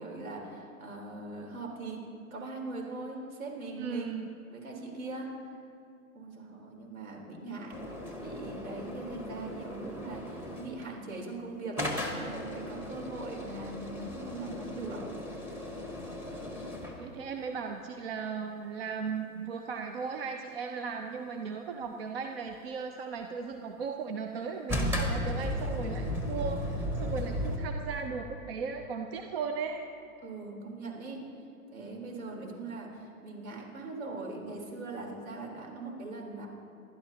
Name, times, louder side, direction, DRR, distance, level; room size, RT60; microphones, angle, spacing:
voice 1, 0.0-5.3 6.1-7.7 8.2-15.0 30.2-31.3 31.7-36.5, right 3 dB, 65° right, -1 dB, 4.0 m, -41 dB
voice 2, 3.8-4.3 17.0-29.8, right 5 dB, 40° right, 5 dB, 0.8 m, -37 dB
sound 1, 7.7-10.9 11.8-17.0 24.7-27.6, left 1 dB, 5° right, 1.0 m, -35 dB
27.5 x 11.5 x 2.9 m, 2.7 s
hypercardioid pair, 145°, 44 cm